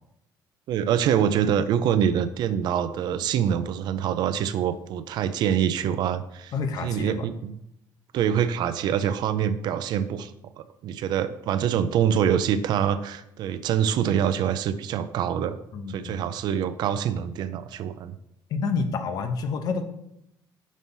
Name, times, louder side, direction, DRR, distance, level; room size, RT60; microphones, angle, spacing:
voice 1, 0.7-6.5 6.8-7.6 8.1-15.6 15.9-18.1, right 9 dB, 60° right, 12 dB, 0.5 m, -25 dB
voice 2, 6.5-7.3 15.7-16.2 18.5-19.9, left 4 dB, 50° left, 8 dB, 0.8 m, -28 dB
6.1 x 4.0 x 5.5 m, 0.78 s
cardioid pair, 160°, 8 cm